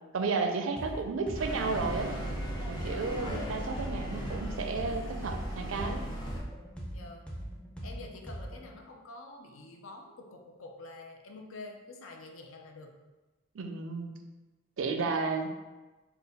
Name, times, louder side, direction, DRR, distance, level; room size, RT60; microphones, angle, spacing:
voice 1, 0.1-2.1 2.7-6.0 13.5-14.1 14.8-15.5, right 4 dB, 70° right, 5 dB, 0.4 m, -32 dB
sound 1, 0.8-1.0 1.3-5.0 5.3-8.7, equal, 5° left, 0.4 m, -41 dB
sound 2, 1.3-6.4, right 1 dB, 20° left, 0.8 m, -37 dB
voice 2, 2.8-3.1 6.9-7.2 7.8-13.0, left 2 dB, 80° left, 2 dB, 0.5 m, -47 dB
3.8 x 2.2 x 4.0 m, 1.2 s
head